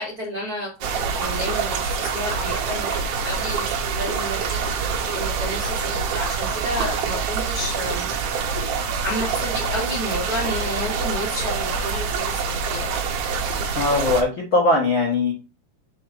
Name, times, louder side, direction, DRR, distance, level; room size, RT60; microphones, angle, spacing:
voice 1, 0.0-8.5 9.0-12.9, equal, 45° right, -5 dB, 1.2 m, -31 dB
sound 1, 0.8-14.2, right 5 dB, 75° right, 1.9 m, -26 dB
voice 2, 13.7-15.3, left 2 dB, 75° left, -2 dB, 1.1 m, -20 dB
7.0 x 3.9 x 5.0 m, 0.31 s
omnidirectional pair, 5.2 m